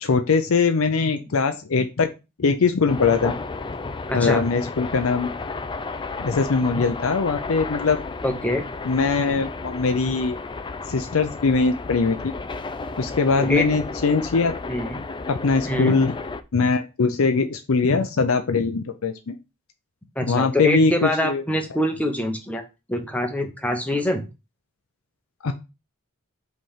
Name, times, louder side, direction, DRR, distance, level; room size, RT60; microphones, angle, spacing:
voice 1, 0.0-2.1 2.4-3.3 4.1-5.3 6.2-8.0 8.8-10.4 10.9-12.2 13.0-14.5 15.3-16.1 16.5-19.3 20.2-21.4 25.4-25.5, left 4 dB, 70° left, 7 dB, 0.6 m, -21 dB
sound 1, 2.9-16.4, left 3 dB, 20° left, 0.4 m, -33 dB
voice 2, 4.1-4.4 8.2-8.6 13.4-13.7 14.7-15.0 15.6-15.9 20.2-22.6 22.9-24.2, left 1 dB, 5° left, 4 dB, 1.0 m, -24 dB
5.3 x 3.4 x 5.6 m, 0.27 s
head